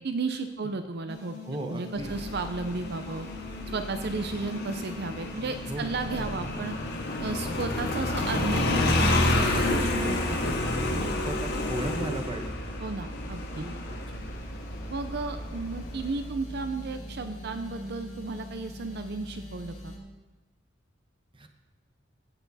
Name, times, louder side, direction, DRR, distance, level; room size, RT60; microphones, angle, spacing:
voice 1, 0.0-1.4 1.7-3.3 3.7-6.8 7.2-11.1 12.8-13.6 14.9-19.9, right 3 dB, 60° right, 8 dB, 0.6 m, -34 dB
sound 1, 1.1-20.0, left 1 dB, 40° left, 2.0 m, -41 dB
voice 2, 1.5-2.1 5.7-5.9 11.2-12.6 13.6-14.3 21.3-21.5, right 1 dB, 25° right, 5 dB, 0.9 m, -36 dB
Motorcycle, 2.0-16.3, left 2 dB, 60° left, 1.6 m, -30 dB
16.0 x 6.8 x 4.1 m, 1.2 s
head